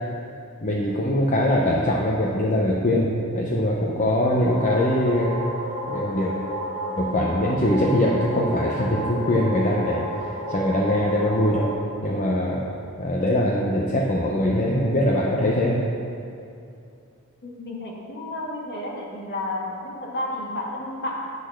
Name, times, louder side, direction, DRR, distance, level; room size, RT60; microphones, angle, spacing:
voice 1, 0.6-5.4 5.9-6.3 7.0-11.7 12.0-12.6 13.0-15.9, left 1 dB, 35° left, -3 dB, 0.6 m, -22 dB
sound 1, 4.4-11.7, equal, 80° left, 1.3 m, -31 dB
voice 2, 17.4-21.3, left 1 dB, 50° left, -2 dB, 1.4 m, -31 dB
10.5 x 4.0 x 6.4 m, 2.5 s
head